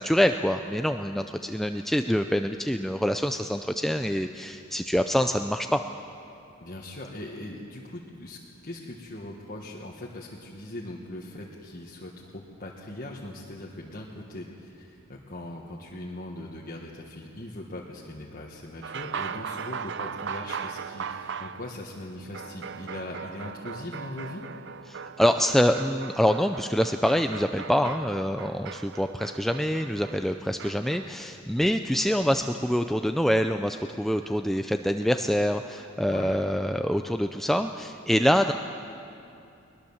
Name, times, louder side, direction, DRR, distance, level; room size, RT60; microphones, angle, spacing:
voice 1, 0.0-5.8 24.9-38.5, equal, ahead, 6 dB, 0.4 m, -25 dB
voice 2, 6.6-24.5 36.0-36.4, left 1 dB, 45° left, -3 dB, 1.6 m, -40 dB
sound 1, 18.8-31.1, right 6 dB, 60° right, 0.6 m, -39 dB
21.5 x 20.5 x 7.2 m, 2.6 s
head